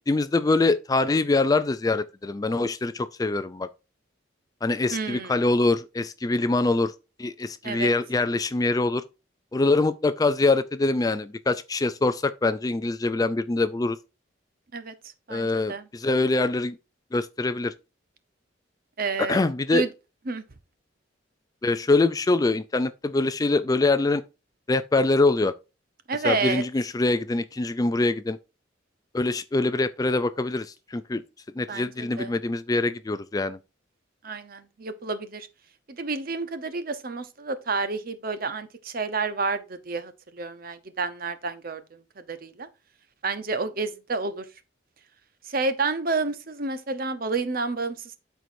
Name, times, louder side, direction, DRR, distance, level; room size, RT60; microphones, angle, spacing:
voice 1, 0.1-3.7 4.6-6.9 7.2-9.0 9.5-14.0 15.3-16.8 17.1-17.7 19.3-19.8 21.6-24.2 24.7-25.5 26.2-28.4 29.1-31.2 31.6-33.6, left 3 dB, 20° left, 0.3 m, -24 dB
voice 2, 4.9-5.4 7.6-7.9 14.7-14.9 15.3-15.9 19.0-19.5 19.7-19.9 20.3-20.4 26.1-26.6 31.7-32.3 34.2-35.5 35.9-42.7 43.2-44.4 45.4-48.2, right 4 dB, 45° right, 0.8 m, -30 dB
12.5 x 4.6 x 2.6 m
head